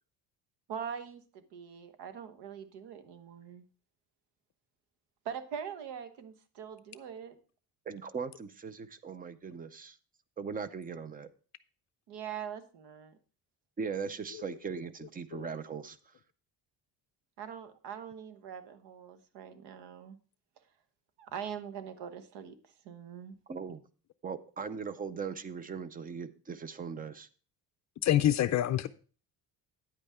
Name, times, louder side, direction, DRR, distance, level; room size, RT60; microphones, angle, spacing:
voice 1, 0.7-3.6 5.2-7.4 12.1-13.2 17.4-20.2 21.2-22.6 22.8-23.3, right 8 dB, 90° right, 1.2 m, -42 dB
voice 2, 7.9-10.0 10.4-11.3 13.8-16.1 23.5-23.8 24.2-27.3, right 5 dB, 20° right, 0.5 m, -39 dB
voice 3, 28.0-28.9, left 12 dB, 45° left, 0.5 m, -26 dB
9.8 x 8.4 x 3.5 m
cardioid pair, 145°, 40 cm